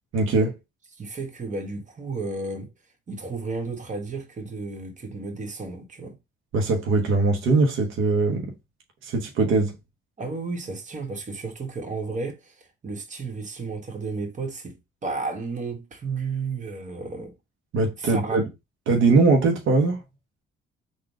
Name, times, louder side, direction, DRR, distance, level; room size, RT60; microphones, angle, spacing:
voice 1, 0.1-0.5 6.5-8.5 9.0-9.8 17.7-18.5 18.9-20.0, right 3 dB, 80° right, 0.9 m, -21 dB
voice 2, 1.0-2.7 3.1-6.2 10.2-17.3 18.0-18.4, right 3 dB, 40° right, 1.4 m, -33 dB
3.9 x 2.4 x 4.6 m
cardioid pair, 90°, 20 cm